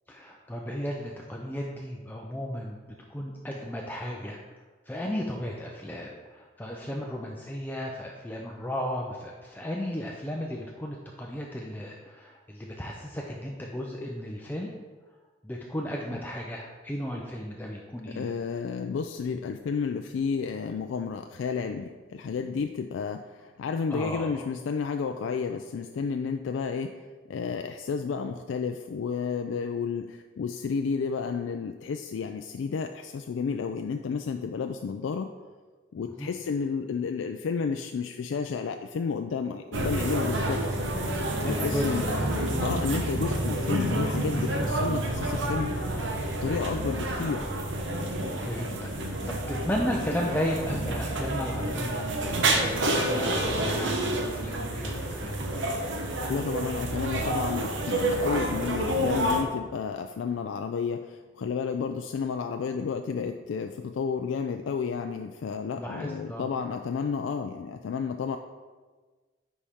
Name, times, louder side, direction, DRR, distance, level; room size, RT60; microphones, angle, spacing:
voice 1, 0.1-2.8 3.1-4.4 4.9-14.7 15.4-18.3 23.9-24.5 36.0-36.3 41.3-42.5 43.2-43.3 48.4-55.5 65.7-66.5, equal, 10° left, -1 dB, 0.4 m, -34 dB
voice 2, 18.1-27.0 27.3-35.3 35.9-40.6 41.4-42.2 42.6-45.7 46.4-47.5 56.3-68.4, left 5 dB, 75° left, 5 dB, 0.3 m, -31 dB
sound 1, 39.7-59.4, right 1 dB, 70° right, 0.9 m, -29 dB
9.8 x 4.2 x 3.5 m, 1.4 s
head